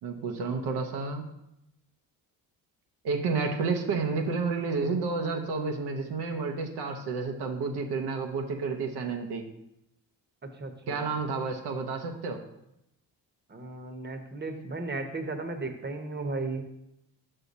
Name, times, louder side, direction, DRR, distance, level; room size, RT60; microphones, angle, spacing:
voice 1, 0.0-1.3 3.0-9.4 10.9-12.4, right 4 dB, 80° right, 3 dB, 0.8 m, -30 dB
voice 2, 10.4-11.1 13.5-16.6, right 3 dB, 25° right, 6 dB, 0.9 m, -35 dB
5.7 x 5.5 x 4.1 m, 0.84 s
cardioid pair, 70°, 39 cm